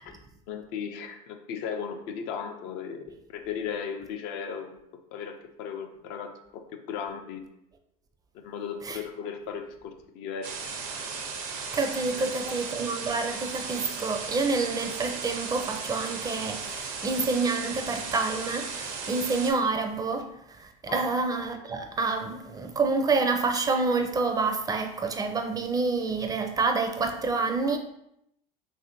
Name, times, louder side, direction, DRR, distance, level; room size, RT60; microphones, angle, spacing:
voice 1, 0.5-4.8 5.1-7.4 8.3-10.5 12.1-12.2 20.9-21.0, left 7 dB, 65° left, 0.5 m, -36 dB
sound 1, 10.4-19.5, right 5 dB, 75° right, 0.6 m, -36 dB
voice 2, 11.7-27.8, right 3 dB, 20° right, 0.4 m, -28 dB
3.0 x 2.6 x 2.8 m
hypercardioid pair, 90°, 19 cm